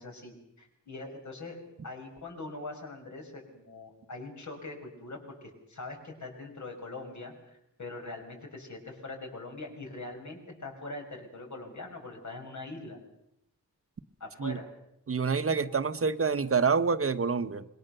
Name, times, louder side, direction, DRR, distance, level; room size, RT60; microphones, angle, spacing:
voice 1, 0.0-5.2 5.7-13.0 14.2-14.7, left 2 dB, 65° left, 3 dB, 5.9 m, -42 dB
voice 2, 15.1-17.6, right 5 dB, 45° right, 11 dB, 1.0 m, -27 dB
27.0 x 22.0 x 6.7 m, 0.79 s
wide cardioid pair, 135°, 32 cm